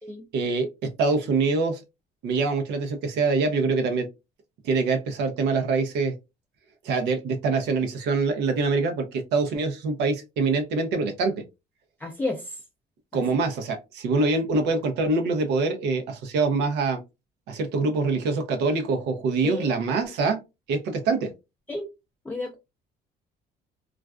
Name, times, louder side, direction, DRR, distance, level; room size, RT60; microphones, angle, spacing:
voice 1, 0.3-0.7 1.0-1.8 2.2-4.1 4.6-6.1 6.8-11.3 13.1-17.0 17.5-20.4 20.7-21.3, right 3 dB, 85° right, 0.6 m, -24 dB
voice 2, 12.0-12.6 13.1-13.2 19.4-19.7 21.7-21.8 22.2-22.6, left 2 dB, 10° left, 0.4 m, -31 dB
2.4 x 2.2 x 2.3 m
cardioid pair, 110°, 17 cm